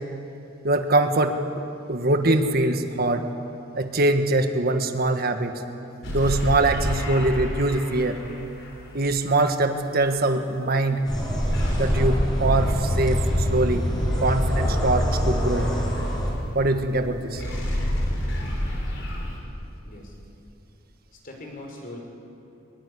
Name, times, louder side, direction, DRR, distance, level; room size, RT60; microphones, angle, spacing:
voice 1, 0.6-1.4 1.9-3.3 3.7-5.6 6.1-8.2 8.9-11.0 11.8-13.9 14.2-15.7 16.5-17.4, right 2 dB, 50° right, 6 dB, 1.6 m, -23 dB
sound 1, 6.0-9.0 11.5-16.9 17.2-19.4, equal, 65° left, 5.7 m, -27 dB
sound 2, 11.0-16.3, equal, 20° left, 7.1 m, -27 dB
voice 2, 19.8-20.2 21.1-22.0, left 1 dB, 45° left, 1 dB, 5.5 m, -41 dB
23.0 x 21.5 x 9.9 m, 2.7 s
head